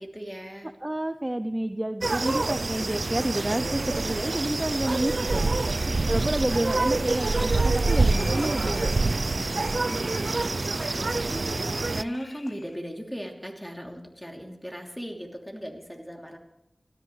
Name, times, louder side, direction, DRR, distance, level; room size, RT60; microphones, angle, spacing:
voice 1, 0.0-0.7 5.8-6.1 10.9-16.4, equal, ahead, 1 dB, 3.0 m, -38 dB
voice 2, 0.8-5.5 6.1-10.5, right 1 dB, 20° right, 9 dB, 0.6 m, -30 dB
sound 1, 2.0-12.0, right 3 dB, 65° right, 0.5 m, -26 dB
sound 2, 6.9-12.8, left 3 dB, 75° left, 0.8 m, -46 dB
29.0 x 13.0 x 3.3 m, 0.83 s
wide cardioid pair, 65°, 0 cm